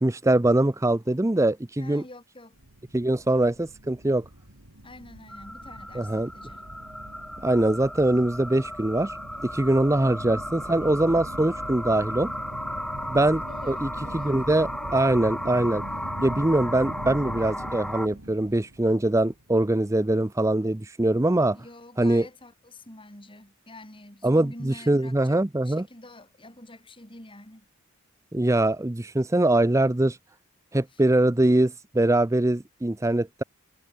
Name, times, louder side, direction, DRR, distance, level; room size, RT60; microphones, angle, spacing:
voice 1, 0.0-2.0 2.9-4.2 5.9-6.3 7.4-9.2 9.4-12.3 13.1-13.9 14.1-15.8 16.2-21.6 22.0-22.3 24.2-25.9 28.3-30.2 30.7-33.4, right 1 dB, 15° right, 0.5 m, -23 dB
voice 2, 1.8-2.6 4.8-6.7 10.1-10.5 13.5-14.4 21.5-27.7 30.9-31.0, left 1 dB, 25° left, 4.3 m, -47 dB
sound 1, 2.5-19.6, right 1 dB, 70° right, 3.8 m, -42 dB
sound 2, 5.3-18.1, equal, ahead, 2.5 m, -35 dB
head